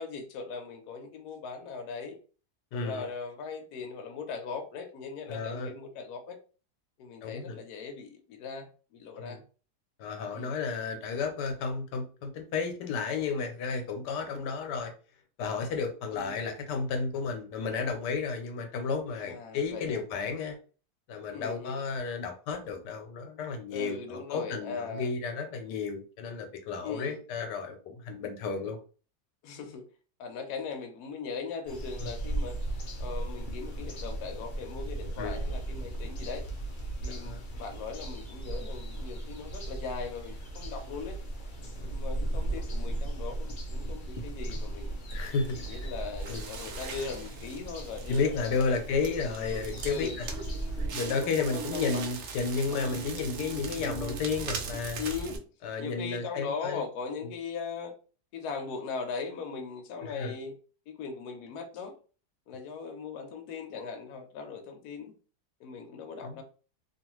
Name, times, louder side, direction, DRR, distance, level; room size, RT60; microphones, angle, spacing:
voice 1, 0.0-2.2 2.7-6.4 7.0-9.4 10.3-10.6 16.1-16.4 19.2-20.0 21.3-21.8 23.7-25.1 26.8-27.2 29.4-29.8 30.2-32.6 33.0-36.4 37.0-41.2 41.9-45.0 45.5-48.7 49.9-50.2 51.2-52.1 55.0-55.5 55.8-57.9 58.3-60.5 60.9-61.9 62.5-65.1 65.6-66.4, left 5 dB, 75° left, 5 dB, 1.1 m, -39 dB
voice 2, 2.7-3.1 5.3-5.7 7.2-7.6 9.2-9.4 10.0-14.9 15.4-20.6 21.1-28.8 32.0-32.1 35.2-35.4 37.1-37.4 45.1-45.9 46.3-46.5 48.1-50.3 50.9-55.0 55.6-56.8 57.2-57.3 60.0-60.3 66.2-66.4, left 4 dB, 90° left, 5 dB, 1.3 m, -32 dB
sound 1, 31.7-50.9, right 1 dB, 60° left, 0.5 m, -36 dB
Crackle, 45.2-55.4, right 5 dB, 75° right, 0.6 m, -40 dB
2.9 x 2.4 x 3.0 m, 0.38 s
omnidirectional pair, 1.8 m